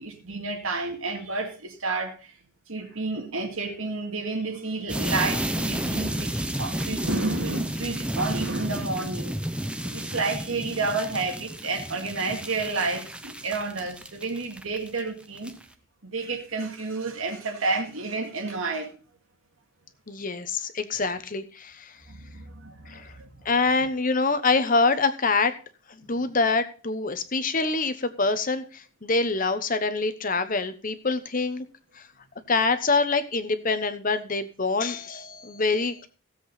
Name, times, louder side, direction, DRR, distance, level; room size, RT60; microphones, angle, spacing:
voice 1, 0.0-2.3 2.7-9.4 9.8-15.6 16.0-19.0 22.1-23.3, right 3 dB, 75° right, 2.2 m, -30 dB
sound 1, 4.9-15.0 15.4-15.6, right 1 dB, 5° right, 0.7 m, -31 dB
voice 2, 20.1-21.9 22.9-23.1 23.4-25.6 26.0-31.6 32.0-32.1 32.5-36.1, left 3 dB, 40° left, 1.0 m, -25 dB
16.0 x 7.8 x 4.1 m
head